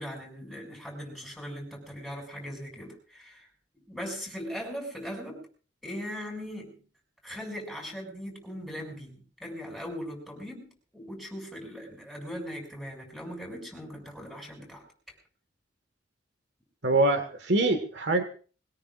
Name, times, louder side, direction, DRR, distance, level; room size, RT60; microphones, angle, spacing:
voice 1, 0.0-3.5 3.7-5.5 5.8-6.8 7.2-14.8, equal, ahead, 0 dB, 7.3 m, -39 dB
voice 2, 16.8-18.2, right 2 dB, 70° right, 7 dB, 1.8 m, -24 dB
22.5 x 20.5 x 2.6 m, 0.39 s
head